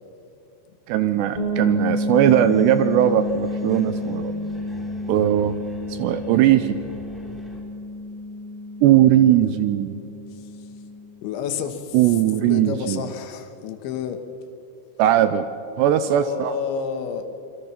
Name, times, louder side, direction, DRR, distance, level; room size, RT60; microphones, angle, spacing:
voice 1, 0.9-4.3 5.1-5.6 6.0-6.8 8.8-10.0 11.9-13.0 15.0-15.5 15.8-16.5, right 12 dB, 80° right, 11 dB, 2.6 m, -19 dB
sound 1, 1.4-11.0, left 1 dB, 50° right, 5.4 m, -30 dB
sound 2, 2.1-7.6, equal, ahead, 2.1 m, -44 dB
voice 2, 10.3-10.7 11.2-14.2 16.0-17.3, left 7 dB, 75° left, 7 dB, 3.5 m, -30 dB
27.0 x 22.0 x 5.9 m, 2.9 s
omnidirectional pair, 5.4 m